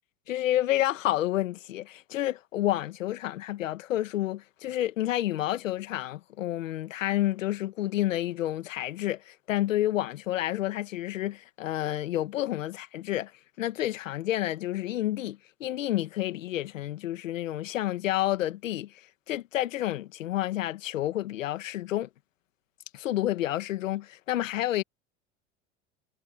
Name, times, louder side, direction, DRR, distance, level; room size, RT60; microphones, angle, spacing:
voice 1, 0.3-13.3 13.6-18.9 19.3-22.1 22.9-24.8, left 14 dB, 85° left, 1.8 m, -29 dB
hypercardioid pair, 80°, 38 cm